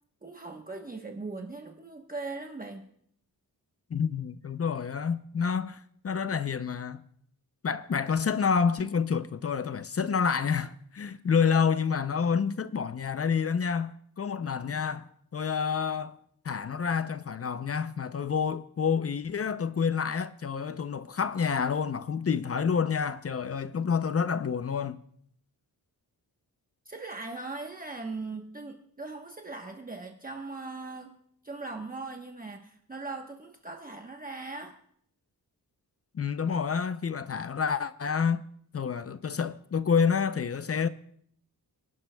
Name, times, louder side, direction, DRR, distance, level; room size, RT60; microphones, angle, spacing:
voice 1, 0.2-2.8 26.8-31.1 31.4-34.7, right 3 dB, 25° right, 1.0 m, -39 dB
voice 2, 3.9-7.0 7.6-16.2 16.4-25.0 36.1-38.4 38.7-40.9, left 6 dB, 40° left, 0.5 m, -28 dB
30.0 x 11.5 x 2.2 m
wide cardioid pair, 140°, 37 cm